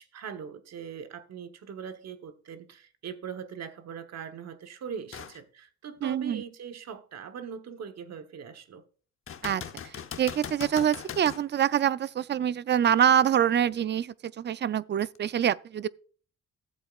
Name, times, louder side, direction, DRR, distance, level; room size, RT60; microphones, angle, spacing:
voice 1, 0.0-8.8, right 7 dB, 60° right, 1.2 m, -41 dB
sound 1, 5.1-5.4 6.0-6.1 9.3-11.5 15.1-15.2, left 7 dB, 45° left, 0.9 m, -40 dB
voice 2, 6.0-6.4 9.4-15.9, right 9 dB, 35° right, 0.4 m, -25 dB
14.5 x 7.8 x 2.4 m
cardioid pair, 90°, 30 cm